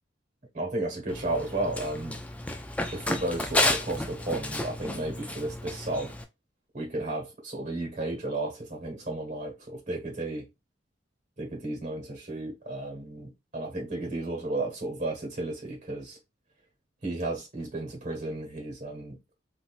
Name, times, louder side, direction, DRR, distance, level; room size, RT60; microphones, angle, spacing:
voice 1, 0.5-2.2 2.9-6.1 6.7-10.5 11.4-16.2 17.0-19.3, right 2 dB, 40° right, 1.4 m, -33 dB
Run, 1.1-6.2, left 2 dB, 5° left, 0.3 m, -31 dB
3.7 x 2.7 x 2.4 m
head